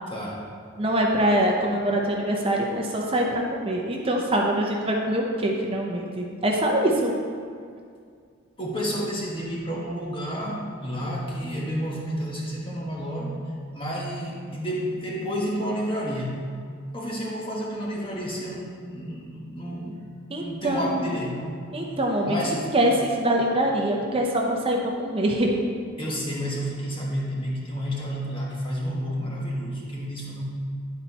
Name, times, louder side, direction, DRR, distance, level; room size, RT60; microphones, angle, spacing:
voice 1, 0.1-0.5 8.6-13.4 13.7-16.4 16.9-20.0 20.4-21.4 22.3-22.7 23.4-23.5 26.0-30.4, equal, 25° left, -4 dB, 1.3 m, -30 dB
voice 2, 0.8-7.1 20.3-21.1 21.7-25.6, right 1 dB, 25° right, -1 dB, 0.7 m, -24 dB
10.5 x 4.3 x 4.1 m, 2.2 s
head